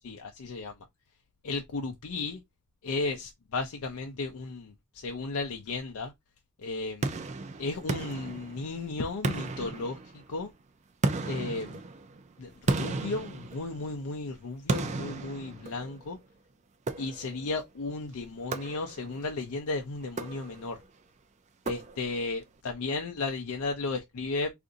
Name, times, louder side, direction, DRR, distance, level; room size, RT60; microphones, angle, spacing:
voice 1, 0.0-0.7 1.4-2.4 2.8-6.1 6.6-7.1 7.6-10.0 10.3-10.5 11.2-11.8 12.4-16.2 17.0-20.8 21.7-24.5, left 3 dB, 85° left, 0.5 m, -34 dB
sound 1, 7.0-8.8 9.2-10.4 11.0-14.1 14.7-16.1 16.9-17.5 18.5-19.2 20.0-20.8 21.7-22.3, right 3 dB, 30° right, 0.4 m, -34 dB
2.5 x 2.5 x 3.8 m
head